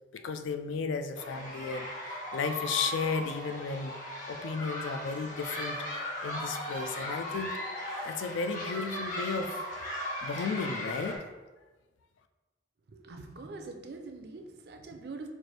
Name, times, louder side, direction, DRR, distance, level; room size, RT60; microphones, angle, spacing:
voice 1, 0.1-3.9 4.3-5.8 6.2-7.5 8.0-9.6 10.2-11.2, left 5 dB, 90° left, 8 dB, 0.4 m, -34 dB
sound 1, 1.1-11.2, left 1 dB, 45° left, 0.8 m, -37 dB
voice 2, 12.9-15.3, right 3 dB, 60° right, 5 dB, 0.4 m, -44 dB
4.4 x 2.5 x 3.2 m, 1.2 s
head